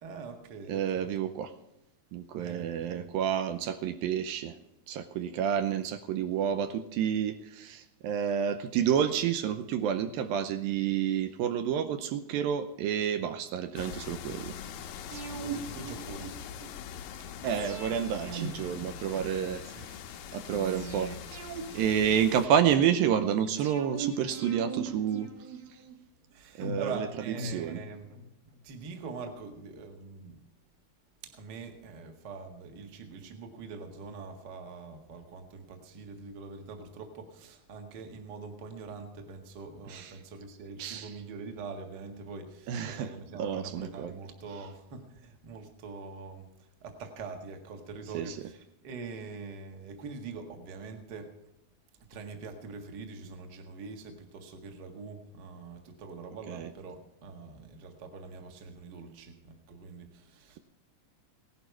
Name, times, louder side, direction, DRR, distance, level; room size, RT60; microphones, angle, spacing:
voice 1, 0.0-1.3 2.3-3.2 15.3-16.6 19.6-20.0 22.1-22.3 26.3-28.1 28.6-30.4 31.2-46.5 46.8-51.3 52.1-60.6, right 4 dB, 45° right, 4 dB, 1.5 m, -44 dB
voice 2, 0.7-1.5 2.1-4.5 4.9-14.6 17.4-19.9 20.3-21.1 21.7-25.3 26.6-27.1 27.4-27.8 39.9-40.1 40.8-41.1 42.7-43.1 43.4-44.1 48.1-48.4 56.5-56.7, right 9 dB, 80° right, 9 dB, 2.4 m, -29 dB
sound 1, 13.7-22.5, left 8 dB, 75° left, 1.8 m, -43 dB
sound 2, 15.1-16.7 17.5-19.6 20.5-22.7 23.6-26.0 26.6-28.3 28.6-28.7, right 4 dB, 60° right, 3.6 m, -40 dB
17.5 x 11.0 x 4.7 m, 0.87 s
omnidirectional pair, 4.4 m